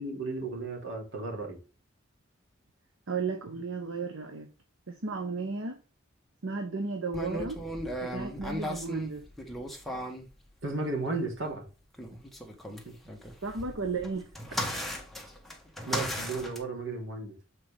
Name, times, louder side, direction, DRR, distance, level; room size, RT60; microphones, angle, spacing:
voice 1, 0.0-1.6 10.6-11.6 12.8-12.9 15.9-17.4, right 3 dB, 70° right, 2.8 m, -34 dB
voice 2, 3.1-4.5 4.9-5.8 6.4-7.6 8.0-9.3 13.4-14.3, right 4 dB, 85° right, 0.9 m, -34 dB
sound 1, 7.1-10.3 11.9-16.6, equal, ahead, 1.2 m, -36 dB
7.4 x 4.6 x 3.4 m
head